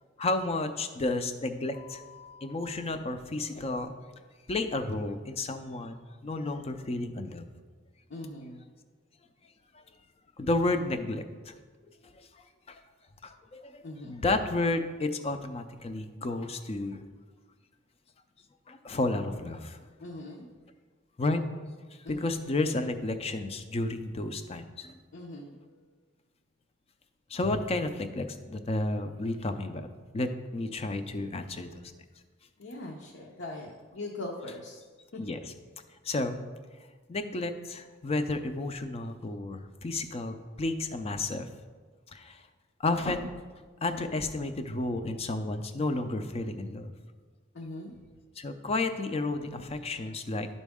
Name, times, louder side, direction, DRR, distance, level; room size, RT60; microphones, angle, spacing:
voice 1, 0.2-4.0 4.5-7.5 10.4-11.5 12.7-12.8 13.2-17.0 18.7-19.8 21.2-21.4 22.1-24.9 27.3-29.9 30.1-31.8 35.2-35.4 36.0-36.4 37.1-41.5 42.1-42.4 42.8-43.3 43.8-46.9 48.4-50.5, left 2 dB, 30° left, 8 dB, 0.5 m, -32 dB
voice 2, 8.1-8.6 13.8-14.2 20.0-20.5 22.0-22.4 25.1-25.8 32.6-34.8 35.1-35.3 47.5-47.9, left 2 dB, 65° left, -1 dB, 0.7 m, -41 dB
11.5 x 4.1 x 3.5 m, 1.4 s
head